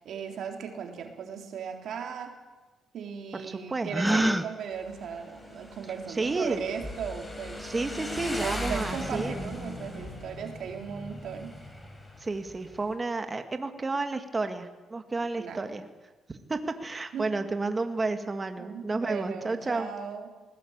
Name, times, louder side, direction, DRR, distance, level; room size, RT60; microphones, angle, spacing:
voice 1, 0.0-2.3 2.9-7.7 8.3-11.5 15.4-15.6 17.1-17.3 18.6-20.3, right 7 dB, 70° right, 3 dB, 3.4 m, -37 dB
voice 2, 3.5-4.2 6.2-6.6 7.6-9.4 12.2-15.9 16.3-19.9, right 3 dB, 25° right, 7 dB, 2.0 m, -31 dB
Gasp, 3.9-4.5, right 1 dB, 5° right, 1.2 m, -24 dB
Motorcycle, 4.7-12.9, left 1 dB, 20° left, 7.1 m, -39 dB
20.0 x 19.0 x 8.8 m, 1.2 s
cardioid pair, 90°, 0 cm